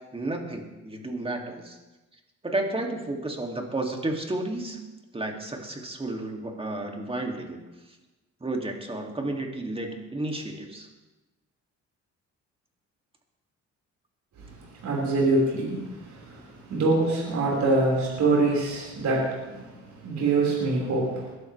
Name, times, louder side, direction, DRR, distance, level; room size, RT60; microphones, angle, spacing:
voice 1, 0.1-1.8 2.4-4.8 5.1-7.6 7.8-8.0 8.4-10.9, right 2 dB, 20° right, 2 dB, 2.6 m, -32 dB
voice 2, 14.4-21.3, right 2 dB, 65° right, -4 dB, 5.1 m, -25 dB
21.5 x 12.5 x 3.4 m, 1.1 s
cardioid pair, 90°, 30 cm